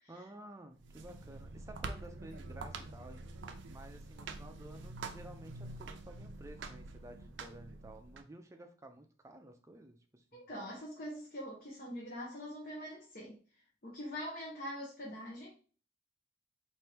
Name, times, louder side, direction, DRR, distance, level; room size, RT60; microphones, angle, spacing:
voice 1, 0.1-10.5, right 1 dB, 15° right, 5 dB, 0.5 m, -53 dB
sound 1, 0.7-8.2, right 3 dB, 70° right, 0.5 m, -46 dB
voice 2, 10.3-13.4 13.8-15.5, equal, 50° left, -4 dB, 1.0 m, -44 dB
4.3 x 2.6 x 3.4 m, 0.41 s
head